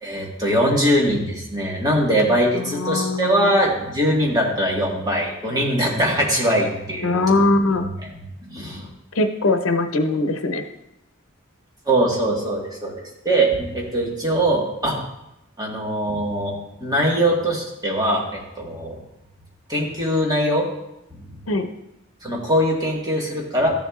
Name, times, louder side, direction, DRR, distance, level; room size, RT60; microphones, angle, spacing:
voice 1, 0.0-7.3 8.0-8.1 8.4-8.9 11.8-15.0 15.6-19.0 19.7-20.7 21.1-21.4 22.2-23.7, right 1 dB, 20° right, -2 dB, 1.5 m, -22 dB
voice 2, 2.5-3.5 7.0-7.9 9.1-10.7 21.5-21.7, left 2 dB, 85° left, 7 dB, 0.8 m, -21 dB
13.0 x 7.2 x 2.4 m, 0.86 s
head